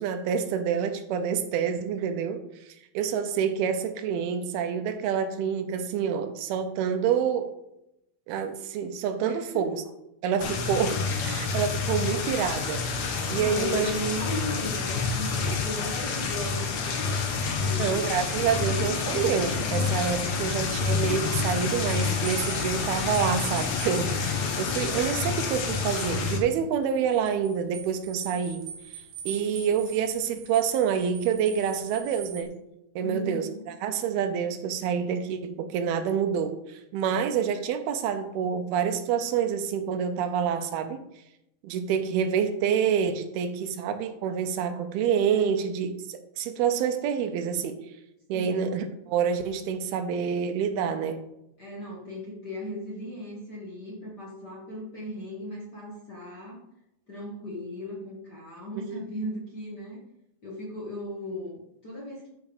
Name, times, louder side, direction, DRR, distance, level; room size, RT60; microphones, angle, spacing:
voice 1, 0.0-7.5 8.3-9.8 10.2-13.0 13.3-13.9 17.8-28.6 28.9-32.6 33.0-41.0 41.6-47.8 48.3-51.2 58.7-59.0, right 7 dB, 80° right, 8 dB, 2.7 m, -27 dB
voice 2, 9.2-9.8 13.3-18.1 33.0-33.6 48.3-48.7 51.6-56.6 57.1-60.0 60.4-62.3, equal, 40° left, -5 dB, 1.7 m, -37 dB
sound 1, 10.4-26.4, left 5 dB, 60° left, 2.1 m, -28 dB
sound 2, 18.4-25.0, left 8 dB, 80° left, 2.1 m, -37 dB
sound 3, 21.9-32.4, right 6 dB, 60° right, 2.1 m, -43 dB
12.5 x 4.6 x 5.3 m, 0.84 s
omnidirectional pair, 4.4 m